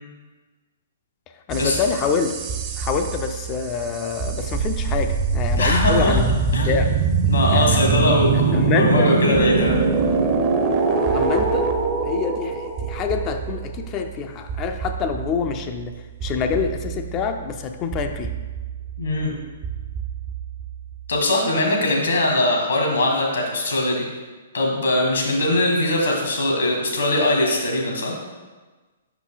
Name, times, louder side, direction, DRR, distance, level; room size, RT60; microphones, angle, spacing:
voice 1, 1.5-2.3 2.8-6.3 6.7-6.9 7.3-7.8 8.5-9.1 11.0-11.7 12.0-15.9 16.2-18.3, left 6 dB, 30° left, 6 dB, 0.4 m, -26 dB
sound 1, 1.5-21.1, right 5 dB, 30° right, 0.6 m, -24 dB
voice 2, 5.6-6.2 6.5-6.8 7.2-9.8 19.0-19.3 21.1-24.1 24.5-28.1, left 1 dB, 75° left, 0 dB, 1.6 m, -21 dB
5.4 x 4.6 x 3.9 m, 1.3 s
figure-of-eight pair, 120°, 0 cm